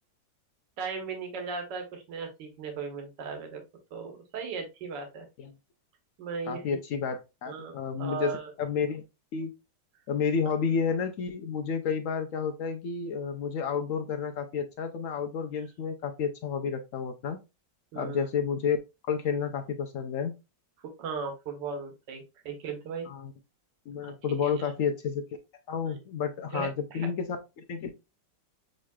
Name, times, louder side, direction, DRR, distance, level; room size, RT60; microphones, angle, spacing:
voice 1, 0.8-3.6 3.9-5.2 6.2-6.6 7.5-8.5 17.9-18.3 21.0-23.1 24.0-24.1 24.4-24.5 25.8-26.0 26.5-27.1, right 5 dB, 75° right, 3 dB, 1.7 m, -37 dB
voice 2, 6.5-8.3 8.6-9.0 9.3-9.5 10.1-17.4 18.0-18.8 19.1-20.3 23.0-23.3 23.9-25.2 25.7-27.9, left 6 dB, 70° left, 5 dB, 0.7 m, -30 dB
6.4 x 3.1 x 2.3 m, 0.25 s
omnidirectional pair, 2.0 m